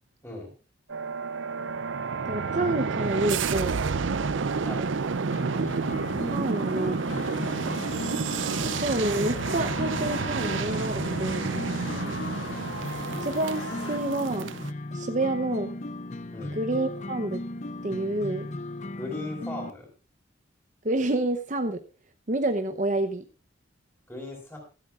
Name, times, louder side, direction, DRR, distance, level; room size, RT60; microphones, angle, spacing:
sound 1, 0.9-14.7, right 5 dB, 70° right, 0.6 m, -30 dB
voice 1, 2.2-3.8 6.3-7.1 8.8-11.7 13.2-14.5 14.9-15.7 16.6-17.4 17.8-18.5 20.8-21.8 22.3-23.2, right 2 dB, 40° right, 7 dB, 0.8 m, -28 dB
sound 2, 5.3-19.7, left 2 dB, 35° left, 0.7 m, -37 dB
sound 3, 7.1-14.0, left 3 dB, 75° left, 1.5 m, -39 dB
voice 2, 18.9-19.9 24.1-24.6, left 2 dB, 10° left, 0 dB, 5.2 m, -37 dB
25.0 x 8.6 x 2.5 m, 0.33 s
head